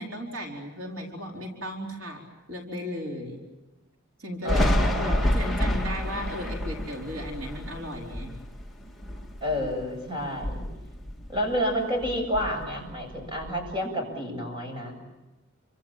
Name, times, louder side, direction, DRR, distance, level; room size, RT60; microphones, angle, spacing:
voice 1, 0.0-2.2 2.5-3.4 4.2-8.3, left 1 dB, 70° right, -1 dB, 4.5 m, -36 dB
voice 2, 4.4-5.3 9.4-10.6 11.3-15.0, equal, 25° right, 3 dB, 7.6 m, -30 dB
Thunder, 4.5-9.9 10.3-11.7 12.0-13.7, left 1 dB, ahead, 2.0 m, -29 dB
29.5 x 25.5 x 7.5 m, 1.1 s
head